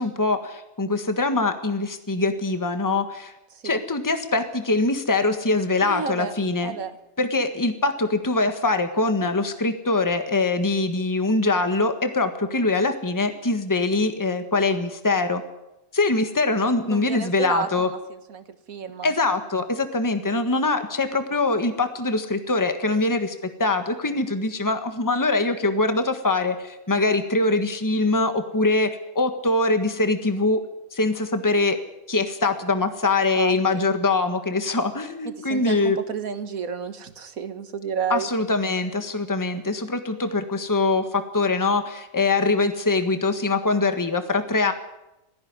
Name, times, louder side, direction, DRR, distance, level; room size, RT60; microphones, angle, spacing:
voice 1, 0.0-3.3 3.6-6.7 7.2-15.4 15.9-17.9 19.0-30.6 30.9-31.8 32.1-36.0 38.1-44.7, left 3 dB, 15° left, 8 dB, 1.5 m, -23 dB
voice 2, 3.5-3.8 5.8-6.3 6.6-7.0 16.8-19.1 33.1-33.9 35.3-38.3, right 6 dB, 80° right, 10 dB, 2.0 m, -32 dB
18.5 x 15.0 x 9.7 m, 0.92 s
omnidirectional pair, 1.5 m